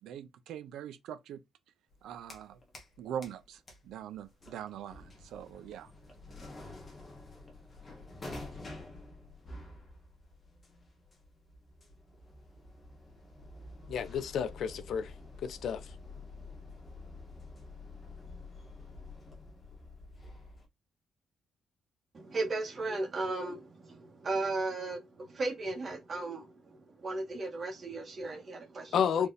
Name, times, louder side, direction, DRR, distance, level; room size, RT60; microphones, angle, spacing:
voice 1, 0.0-1.4 2.0-2.6 3.0-5.9, right 9 dB, 85° right, 0.5 m, -42 dB
sound 1, 1.9-3.0 3.2-20.7, left 2 dB, 25° left, 1.3 m, -49 dB
voice 2, 13.9-15.1 15.4-15.8 28.9-29.3, left 7 dB, 55° left, 0.4 m, -31 dB
voice 3, 22.1-29.3, right 2 dB, 30° right, 1.5 m, -36 dB
4.4 x 3.4 x 2.5 m
cardioid pair, 180°, 0 cm